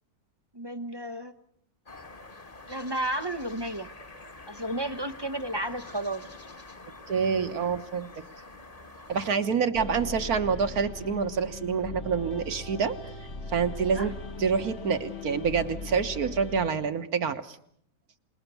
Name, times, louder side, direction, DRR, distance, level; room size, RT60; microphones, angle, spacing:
voice 1, 0.5-1.3 2.7-3.9 4.5-6.2 13.9-14.1, right 1 dB, 20° right, 10 dB, 0.7 m, -32 dB
sound 1, 1.9-9.3, left 2 dB, 25° left, 1.4 m, -47 dB
voice 2, 7.1-8.2 9.1-12.9 13.5-14.1 14.4-17.6, right 6 dB, 60° right, 8 dB, 1.7 m, -27 dB
sound 2, 9.7-16.7, left 3 dB, 40° left, 1.5 m, -39 dB
27.0 x 21.0 x 6.9 m, 0.65 s
omnidirectional pair, 1.8 m